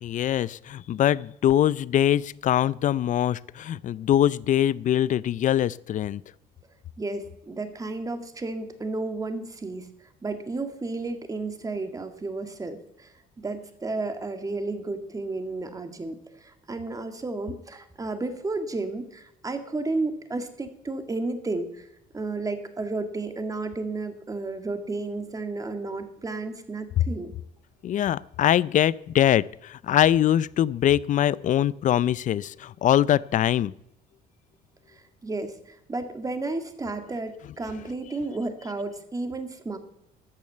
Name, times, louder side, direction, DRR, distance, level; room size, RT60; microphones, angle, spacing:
voice 1, 0.0-6.2 27.0-27.1 27.8-33.7, left 11 dB, 50° left, 21 dB, 0.5 m, -23 dB
voice 2, 7.0-9.9 10.2-21.9 22.1-27.3 34.9-39.8, right 3 dB, 20° right, 8 dB, 1.9 m, -32 dB
13.0 x 8.8 x 7.9 m, 0.80 s
cardioid pair, 110°, 17 cm